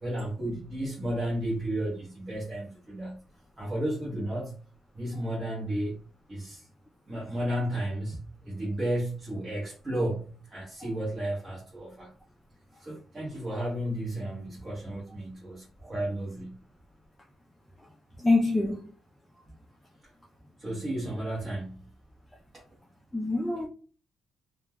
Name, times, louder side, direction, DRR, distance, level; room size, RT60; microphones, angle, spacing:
voice 1, 0.0-3.2 3.6-4.6 4.9-5.9 6.3-6.6 7.1-12.1 12.8-16.6 20.6-21.9, right 1 dB, 30° right, 1.1 m, -33 dB
voice 2, 18.2-18.8 23.1-23.7, left 2 dB, 10° left, 0.5 m, -24 dB
3.1 x 2.2 x 2.2 m
cardioid pair, 90°, 0 cm